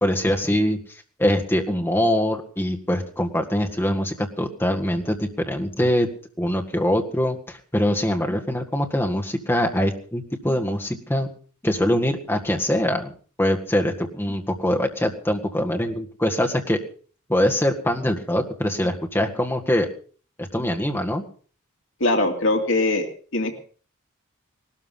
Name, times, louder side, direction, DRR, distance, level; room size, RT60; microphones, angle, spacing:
voice 1, 0.0-0.8 1.2-6.1 6.4-11.3 11.6-13.1 13.4-16.8 17.3-19.9 20.4-21.2, left 1 dB, 10° left, 3 dB, 1.8 m, -23 dB
voice 2, 22.0-23.1 23.3-23.6, left 2 dB, 60° left, 3 dB, 2.8 m, -21 dB
19.0 x 13.0 x 5.6 m, 0.42 s
head